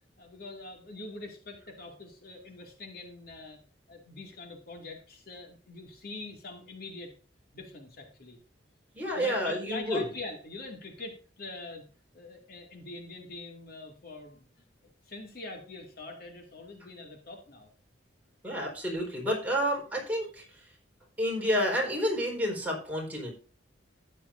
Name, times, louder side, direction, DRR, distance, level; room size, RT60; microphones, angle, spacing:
voice 1, 0.2-3.6 3.9-7.1 7.5-8.4 9.1-11.8 12.1-14.6 15.0-17.7, left 2 dB, 55° left, 3 dB, 2.2 m, -43 dB
voice 2, 8.9-10.0 18.4-20.6 21.2-23.3, equal, 10° right, -2 dB, 4.3 m, -30 dB
14.0 x 9.8 x 2.6 m, 0.37 s
head